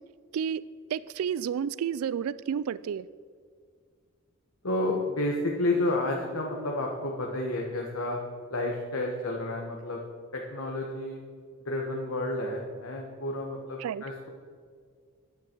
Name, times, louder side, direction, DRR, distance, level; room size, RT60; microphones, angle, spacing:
voice 1, 0.9-3.1 13.8-14.0, right 8 dB, 90° right, 18 dB, 0.3 m, -31 dB
voice 2, 4.6-8.2 8.5-10.0 10.3-11.2 11.6-14.3, left 2 dB, 75° left, 0 dB, 1.4 m, -30 dB
14.5 x 10.5 x 4.6 m, 2.1 s
head